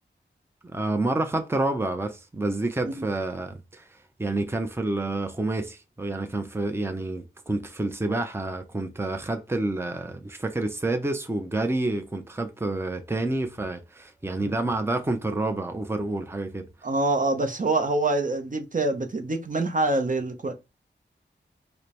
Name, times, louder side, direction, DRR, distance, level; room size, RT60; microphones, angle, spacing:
voice 1, 0.7-16.7, right 2 dB, 10° right, 0.6 m, -28 dB
voice 2, 16.8-20.5, right 2 dB, 45° right, 0.7 m, -25 dB
4.8 x 2.1 x 2.9 m
wide cardioid pair, 55°, 19 cm